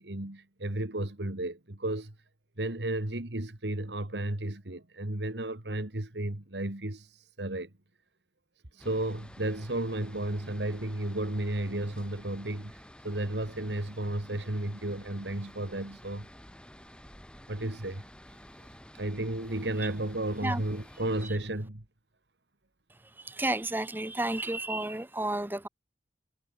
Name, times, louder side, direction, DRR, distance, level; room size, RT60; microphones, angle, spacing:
voice 1, 0.0-2.1 2.6-7.7 8.7-16.3 17.5-18.0 18.6-18.7 18.9-21.8, right 1 dB, 80° right, 2.3 m, -33 dB
sound 1, 8.8-21.3, equal, 5° left, 4.4 m, -51 dB
voice 2, 23.3-25.7, right 2 dB, 10° right, 0.7 m, -31 dB
head